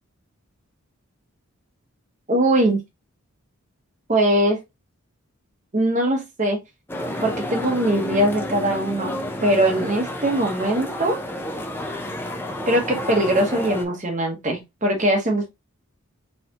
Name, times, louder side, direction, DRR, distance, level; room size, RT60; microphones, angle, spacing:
voice 1, 2.3-2.8 4.1-4.6 5.7-6.6 7.2-9.1 9.4-11.2 12.7-15.5, right 1 dB, 35° right, 1.1 m, -21 dB
sound 1, 6.9-13.8, left 1 dB, 10° left, 0.6 m, -30 dB
4.3 x 4.0 x 2.9 m
head